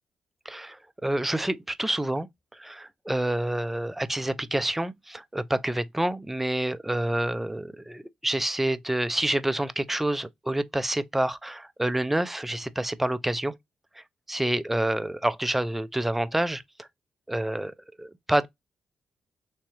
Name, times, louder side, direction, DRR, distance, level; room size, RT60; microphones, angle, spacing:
voice 1, 0.5-2.3 2.5-13.6 14.0-16.9 17.3-18.5, right 1 dB, 10° right, 0.4 m, -28 dB
3.5 x 3.2 x 2.8 m
cardioid pair, 85°, 2 cm